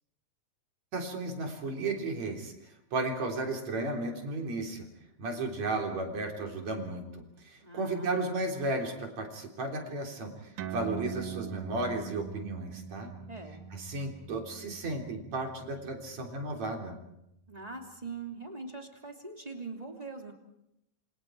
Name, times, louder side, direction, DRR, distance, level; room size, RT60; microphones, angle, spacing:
voice 1, 0.9-2.5 2.9-4.9 5.2-10.3 10.7-13.1 13.7-17.0, right 2 dB, 60° right, 2 dB, 4.8 m, -34 dB
voice 2, 7.6-8.3 13.3-13.6 17.5-20.3, right 3 dB, 15° right, 2 dB, 2.8 m, -42 dB
sound 1, 10.6-17.5, right 8 dB, 80° right, 2.6 m, -43 dB
28.0 x 26.5 x 4.7 m, 0.81 s
omnidirectional pair, 3.5 m